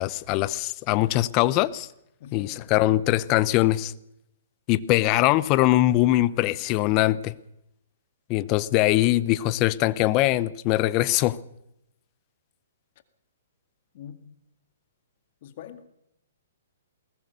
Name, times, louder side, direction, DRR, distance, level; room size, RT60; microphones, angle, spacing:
voice 1, 0.0-1.9 2.3-3.9 4.7-7.3 8.3-11.4, left 16 dB, 35° left, 0.8 m, -22 dB
voice 2, 2.2-2.5 13.9-14.3 15.4-15.9, left 9 dB, 50° left, 2.0 m, -43 dB
21.5 x 19.0 x 6.8 m
hypercardioid pair, 135°, 0 cm